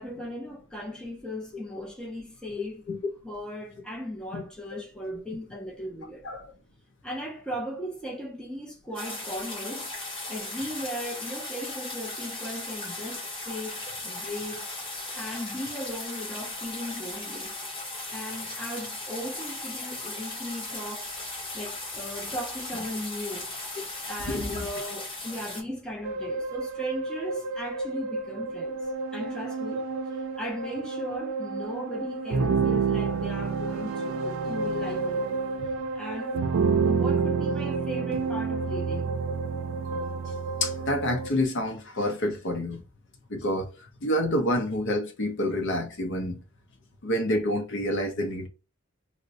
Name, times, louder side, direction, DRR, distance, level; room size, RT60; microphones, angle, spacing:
voice 1, 0.0-2.9 3.2-6.2 7.0-9.9 10.3-14.9 15.1-17.5 18.1-23.5 24.1-28.9 29.1-29.8 30.1-35.4 35.9-36.4 36.8-39.2, equal, 5° left, 0.5 m, -37 dB
voice 2, 2.6-3.0 4.3-4.4 6.2-6.5 24.2-24.6 40.6-42.8 43.3-43.7 44.0-46.4 47.0-48.5, left 1 dB, 60° left, 0.5 m, -28 dB
sound 1, 8.9-25.6, left 2 dB, 25° left, 0.8 m, -37 dB
sound 2, 26.0-41.3, right 4 dB, 80° right, 0.4 m, -29 dB
2.5 x 2.1 x 3.9 m
head